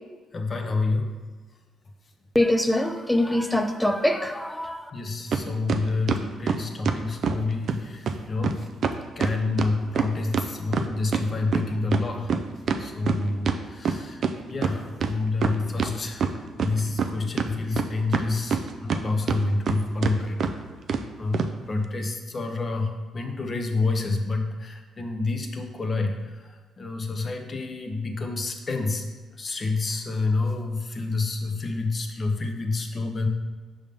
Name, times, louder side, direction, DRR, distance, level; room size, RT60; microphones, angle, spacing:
voice 1, 0.3-1.1 4.9-8.7 9.2-12.3 12.8-14.2 14.5-16.3 16.6-20.4 21.2-21.4 21.7-26.4 26.8-29.0 29.4-33.3, left 3 dB, 35° left, 0.7 m, -28 dB
voice 2, 2.3-4.9, left 1 dB, 5° left, 0.5 m, -23 dB
sound 1, 5.3-5.4 5.7-7.4 7.7-7.8 8.1-8.2 8.4-8.5 8.8-11.3 11.5-14.3 14.6-14.7 15.0-15.9 16.2-17.1 17.4-19.0 19.3-19.8 20.0-20.1 20.4-20.5 20.9-21.0 21.3-21.5, right 6 dB, 60° right, 0.4 m, -25 dB
5.4 x 3.5 x 5.1 m
cardioid pair, 90°, 0 cm